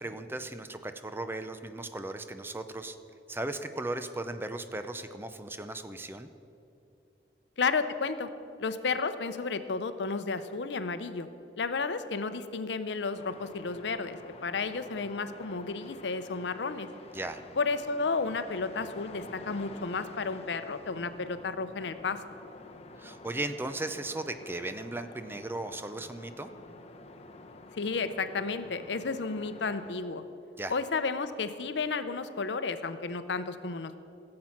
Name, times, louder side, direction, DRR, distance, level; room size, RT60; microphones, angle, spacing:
voice 1, 0.0-3.0 3.3-6.3 17.1-17.4 23.0-26.5 30.6-30.8, right 2 dB, 15° right, 9 dB, 0.5 m, -37 dB
voice 2, 7.6-8.3 8.6-11.3 11.6-16.9 17.6-22.2 27.7-30.2 30.7-33.9, left 4 dB, 75° left, 11 dB, 0.6 m, -32 dB
sound 1, 13.2-29.9, left 2 dB, 35° left, 0.8 m, -49 dB
16.5 x 7.6 x 5.9 m, 2.8 s
head